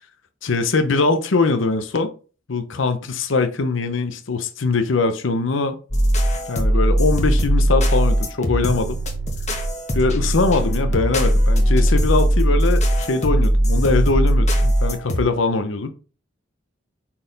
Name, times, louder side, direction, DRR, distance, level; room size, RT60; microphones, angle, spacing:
voice 1, 0.4-2.1 2.5-5.8 6.5-9.0 9.9-15.9, left 3 dB, 75° left, 0.7 m, -22 dB
sound 1, 5.9-15.2, equal, 35° left, 1.2 m, -19 dB
5.6 x 4.4 x 4.0 m
head